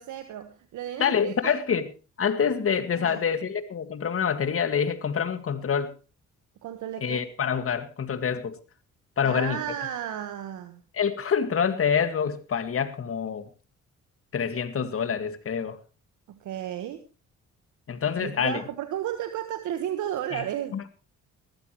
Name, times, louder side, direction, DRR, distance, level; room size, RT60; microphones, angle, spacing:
voice 1, 0.0-1.6 3.0-3.2 6.6-7.2 9.2-10.8 16.3-17.0 18.2-20.8, right 11 dB, 80° right, 1.5 m, -33 dB
voice 2, 1.0-1.9 2.2-5.9 7.0-8.6 9.2-9.6 10.9-13.5 14.3-15.8 17.9-18.6 20.3-20.4 20.7-21.0, left 7 dB, 45° left, 2.0 m, -26 dB
20.0 x 14.0 x 3.1 m
cardioid pair, 90°, 30 cm